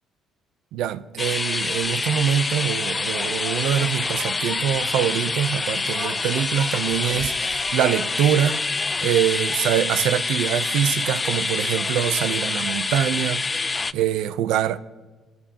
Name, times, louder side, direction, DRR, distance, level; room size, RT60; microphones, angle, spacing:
voice 1, 0.7-8.6 9.0-13.4 13.9-14.8, right 10 dB, 80° right, 0.6 m, -24 dB
sound 1, 1.2-13.9, left 3 dB, 25° left, 0.4 m, -26 dB
21.5 x 14.0 x 2.9 m
supercardioid pair, 75°, 0 cm